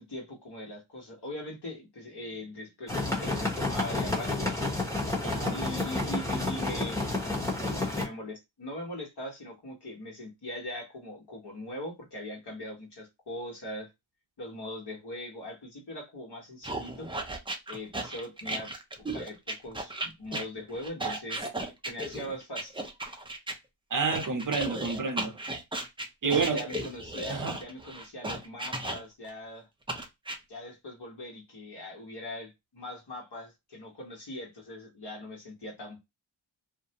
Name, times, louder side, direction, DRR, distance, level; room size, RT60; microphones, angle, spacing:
voice 1, 0.0-4.6 5.5-7.1 7.7-13.9 14.4-17.1 17.7-18.7 19.0-21.4 21.9-22.8 26.2-29.7 30.5-36.0, left 1 dB, 55° left, 1.3 m, -41 dB
sound 1, 2.9-8.1, left 2 dB, 5° left, 1.0 m, -30 dB
voice 2, 5.2-5.6 21.0-21.2 23.9-25.3 26.2-26.7 27.3-27.6, right 5 dB, 40° right, 0.8 m, -29 dB
sound 2, 16.6-23.6 24.1-29.3 29.9-30.4, right 2 dB, 10° right, 0.5 m, -35 dB
2.5 x 2.2 x 2.8 m
cardioid pair, 55°, 48 cm